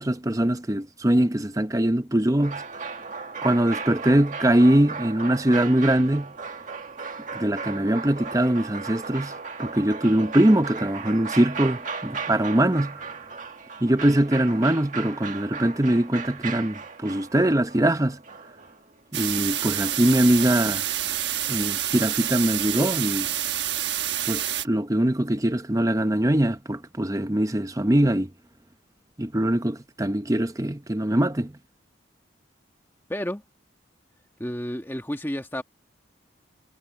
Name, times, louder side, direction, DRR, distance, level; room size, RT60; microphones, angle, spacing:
voice 1, 0.0-2.6 3.4-6.3 7.3-13.0 13.8-18.2 19.1-20.9 21.5-23.3 24.2-28.3 29.2-31.5, right 1 dB, 15° right, 0.8 m, -22 dB
sound 1, 2.4-19.0 20.3-20.6, right 5 dB, 40° right, 1.8 m, -36 dB
sound 2, 19.1-24.6, right 12 dB, 65° right, 1.3 m, -28 dB
voice 2, 33.1-33.4 34.4-35.6, equal, 10° left, 1.4 m, -31 dB
head